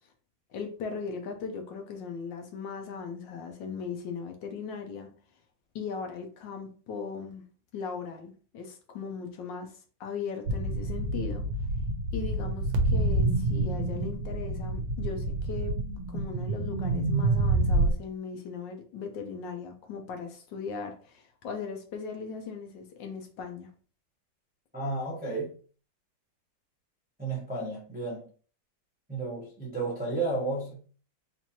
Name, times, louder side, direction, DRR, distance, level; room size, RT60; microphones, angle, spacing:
voice 1, 0.5-5.1 5.7-7.4 7.7-9.7 10.0-11.4 12.1-15.7 16.1-23.7, left 5 dB, 75° left, 1.3 m, -38 dB
sound 1, 10.5-17.9, right 2 dB, 85° right, 1.4 m, -28 dB
voice 2, 24.7-25.5 27.2-28.3 29.1-30.7, right 2 dB, 10° right, 0.5 m, -32 dB
4.4 x 2.5 x 2.8 m
omnidirectional pair, 2.1 m